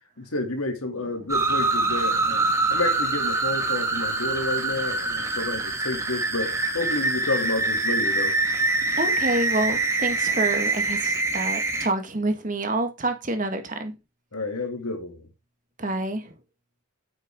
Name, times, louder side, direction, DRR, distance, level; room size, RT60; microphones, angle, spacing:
voice 1, 0.2-8.3 14.3-15.3, left 2 dB, 85° left, 2.8 m, -30 dB
sound 1, 1.3-11.9, right 3 dB, 15° right, 1.6 m, -25 dB
voice 2, 8.9-14.0 15.8-16.3, right 2 dB, 35° right, 1.8 m, -27 dB
9.2 x 8.0 x 3.7 m
head